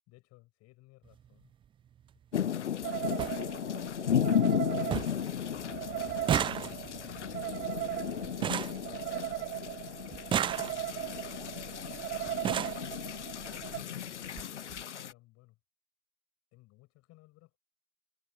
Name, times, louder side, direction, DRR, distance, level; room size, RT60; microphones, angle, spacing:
voice 1, 0.1-1.5 8.9-10.5 10.8-12.5 13.4-15.6 16.5-17.6, left 20 dB, 45° left, 6.0 m, -60 dB
sound 1, 1.0-1.3 2.5-2.6 2.8-2.9 3.2-3.4 3.8-4.3 4.6-4.7 4.9-5.3 5.6-9.5 10.1-11.1 11.9-12.0 12.3-12.9 13.8-13.9 14.2-14.4 14.7-14.8, right 9 dB, 15° right, 0.4 m, -34 dB
sound 2, 2.3-15.1, left 9 dB, 85° left, 0.6 m, -34 dB
sound 3, 2.8-13.8, right 13 dB, 35° right, 1.4 m, -38 dB
figure-of-eight pair, 80°, 35 cm